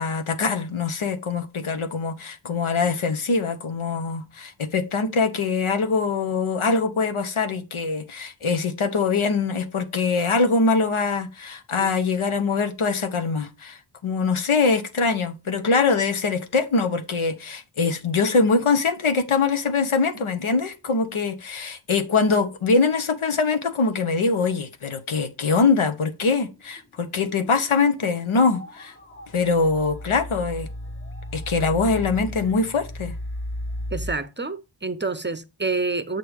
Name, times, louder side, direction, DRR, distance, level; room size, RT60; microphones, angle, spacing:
voice 1, 0.0-28.9 29.3-30.7 31.3-33.1, left 4 dB, 85° left, 1.0 m, -23 dB
sound 1, 28.5-28.8 29.1-34.1, left 1 dB, 25° left, 0.9 m, -34 dB
voice 2, 33.9-36.2, right 3 dB, 25° right, 0.6 m, -28 dB
7.7 x 6.4 x 3.5 m
wide cardioid pair, 80°, 48 cm